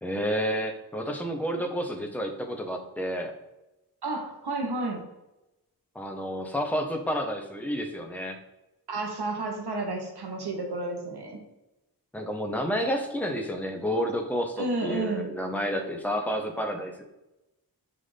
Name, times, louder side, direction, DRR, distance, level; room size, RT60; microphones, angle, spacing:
voice 1, 0.0-3.3 5.9-8.4 12.1-17.0, equal, 5° left, 3 dB, 0.6 m, -30 dB
voice 2, 4.0-5.0 8.9-11.4 14.6-15.3, right 2 dB, 70° right, 2 dB, 1.0 m, -31 dB
5.6 x 2.5 x 3.3 m, 0.98 s
wide cardioid pair, 50°, 41 cm